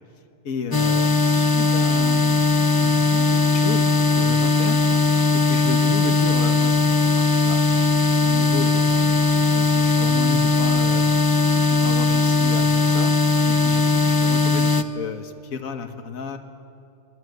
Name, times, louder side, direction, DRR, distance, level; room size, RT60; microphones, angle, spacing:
voice 1, 0.4-2.4 2.8-4.8 5.3-6.8 7.2-7.7 8.2-9.2 9.5-11.0 11.5-13.1 13.5-16.4, left 5 dB, 65° left, 7 dB, 1.8 m, -33 dB
sound 1, 0.7-14.8, left 3 dB, 20° left, 0.6 m, -19 dB
26.5 x 21.0 x 9.3 m, 2.5 s
omnidirectional pair, 1.6 m